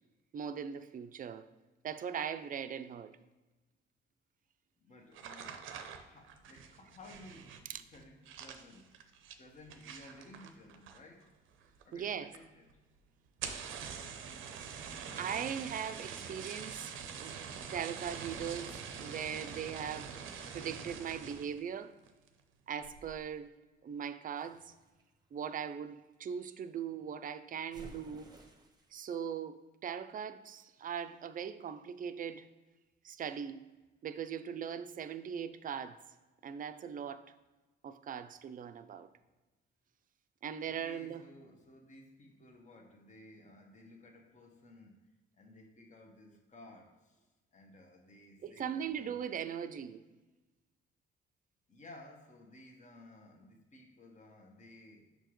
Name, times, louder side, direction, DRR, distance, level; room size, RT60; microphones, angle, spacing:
voice 1, 0.3-1.5 1.8-3.1 7.7-7.8 11.9-12.3 15.2-17.4 17.7-21.9 22.7-23.5 23.8-24.7 25.3-28.3 28.9-32.5 33.0-33.7 34.0-36.0 36.4-37.2 37.8-39.1 40.4-41.2 48.4-50.0, right 8 dB, 45° right, 0.5 m, -40 dB
voice 2, 4.8-8.9 9.4-11.3 11.8-12.7 40.6-45.1 45.3-47.2 47.5-49.1 51.7-55.0, left 1 dB, 35° left, 1.2 m, -56 dB
sound 1, 5.1-11.2 11.5-12.0 12.3-12.4 12.7-12.8 13.3-21.6 22.0-22.4 22.8-23.2, right 7 dB, 85° right, 0.6 m, -45 dB
sound 2, 24.4-26.2 27.7-29.0, right 2 dB, 20° right, 0.9 m, -56 dB
6.8 x 5.1 x 3.1 m
cardioid pair, 90°, 20 cm